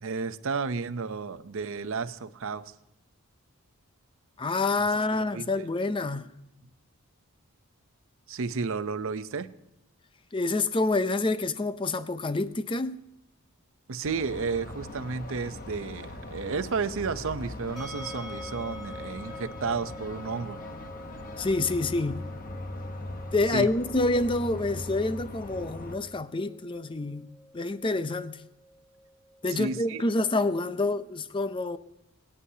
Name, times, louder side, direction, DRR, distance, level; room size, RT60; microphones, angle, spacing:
voice 1, 0.0-2.7 4.8-5.4 8.3-9.5 13.9-20.6 23.5-23.7 29.5-30.0, right 4 dB, 60° right, 0.6 m, -32 dB
voice 2, 4.4-6.3 10.3-13.0 21.4-22.2 23.3-27.3 27.5-28.4 29.4-31.8, left 2 dB, 20° left, 0.5 m, -27 dB
sound 1, 14.0-26.0, left 2 dB, 40° left, 1.0 m, -40 dB
sound 2, 17.8-30.7, left 1 dB, ahead, 3.0 m, -47 dB
23.0 x 9.9 x 2.8 m
head